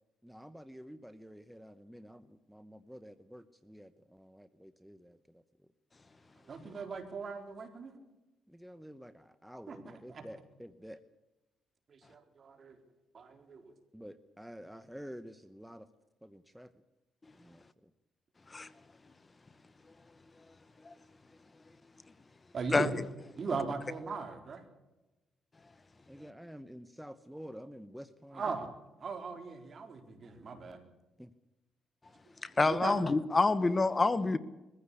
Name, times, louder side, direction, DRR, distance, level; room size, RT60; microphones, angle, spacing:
voice 1, 0.2-5.2 8.5-11.0 13.9-15.9 16.2-16.7 17.4-17.9 26.1-28.5 31.2-31.3, equal, ahead, 1.0 m, -49 dB
voice 2, 6.5-7.9 9.7-10.2 11.9-12.8 13.1-13.7 22.5-22.9 23.4-24.6 28.3-28.7 29.0-30.8 32.6-33.0, right 4 dB, 45° right, 4.2 m, -39 dB
voice 3, 32.4-34.4, left 3 dB, 25° left, 1.0 m, -27 dB
22.5 x 15.5 x 8.5 m
cardioid pair, 90°, 0 cm